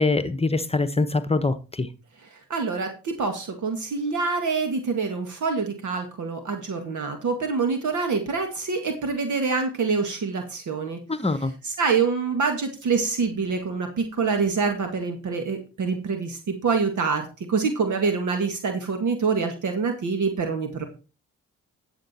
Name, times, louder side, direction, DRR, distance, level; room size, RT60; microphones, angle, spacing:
voice 1, 0.0-1.9 11.1-11.5, left 3 dB, 20° left, 1.1 m, -24 dB
voice 2, 2.5-11.0 11.6-20.8, right 4 dB, 65° right, 2.0 m, -26 dB
11.5 x 7.1 x 4.3 m
supercardioid pair, 55°, 32 cm